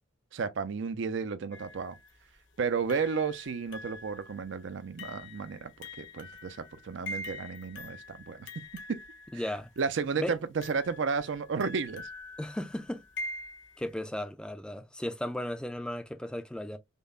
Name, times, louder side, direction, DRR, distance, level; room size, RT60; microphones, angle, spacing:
voice 1, 0.3-2.0 2.6-5.7 6.0-8.5 8.9-9.0 9.3-9.4 9.8-12.1, right 5 dB, 65° right, 0.4 m, -32 dB
sound 1, 1.5-2.1 2.9-9.8 10.6-13.9, left 2 dB, 65° left, 0.8 m, -44 dB
voice 2, 9.3-9.7 10.2-10.3 12.4-13.0 13.8-16.8, left 1 dB, 5° left, 0.3 m, -35 dB
5.2 x 2.1 x 2.3 m
head